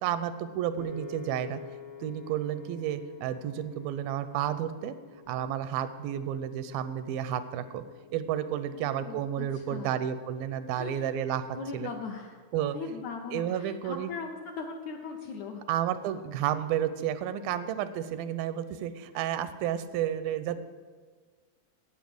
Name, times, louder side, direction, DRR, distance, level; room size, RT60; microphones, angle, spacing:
voice 1, 0.0-1.6 2.0-5.0 5.3-7.8 8.1-11.4 11.7-11.9 12.5-12.8 13.3-14.1 15.7-20.6, right 10 dB, 90° right, 12 dB, 2.4 m, -31 dB
Piano, 0.8-13.0, left 4 dB, 60° left, 1.4 m, -50 dB
voice 2, 8.7-9.9 10.7-11.2 11.5-15.6, left 5 dB, 75° left, 3 dB, 1.7 m, -39 dB
9.4 x 8.7 x 7.7 m, 1.5 s
omnidirectional pair, 4.1 m